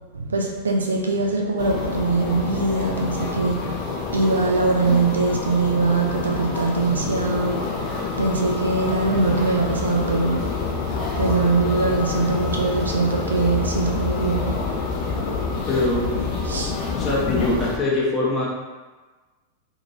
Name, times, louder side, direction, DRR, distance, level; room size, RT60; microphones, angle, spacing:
voice 1, 0.1-7.9 8.2-14.6 16.4-16.7, right 3 dB, 75° right, 1 dB, 0.4 m, -22 dB
sound 1, 1.6-17.8, left 4 dB, 40° left, 0.6 m, -27 dB
voice 2, 15.7-16.4 16.9-18.5, left 2 dB, 25° left, -5 dB, 0.9 m, -23 dB
2.8 x 2.8 x 2.7 m, 1.3 s
figure-of-eight pair, 90°, 0 cm